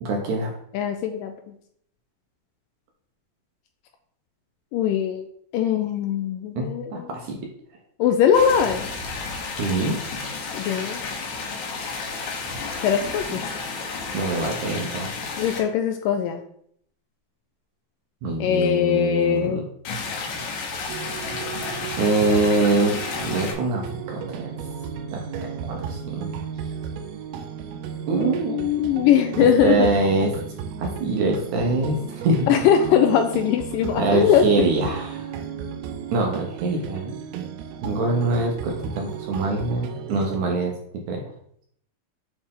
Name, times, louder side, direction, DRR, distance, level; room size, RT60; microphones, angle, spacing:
voice 1, 0.0-0.5 6.6-7.4 9.6-10.0 13.3-13.4 14.1-15.1 18.2-19.6 22.0-23.8 24.1-24.5 25.1-25.2 25.6-26.3 28.1-28.6 29.4-30.3 30.8-32.4 34.0-35.3 36.1-37.1 37.8-40.7 41.1-41.2, right 2 dB, 70° right, 0 dB, 2.0 m, -24 dB
voice 2, 0.7-1.3 4.7-5.3 5.5-7.1 8.0-8.9 10.5-11.0 12.8-13.5 15.4-16.4 18.4-19.6 28.2-29.9 32.5-34.4, left 8 dB, 80° left, 6 dB, 2.0 m, -21 dB
sound 1, 8.3-15.6 19.8-23.5, left 4 dB, 65° left, 2.1 m, -32 dB
sound 2, 20.9-40.4, right 7 dB, 85° right, 2.5 m, -34 dB
8.8 x 3.4 x 3.6 m, 0.67 s
omnidirectional pair, 4.2 m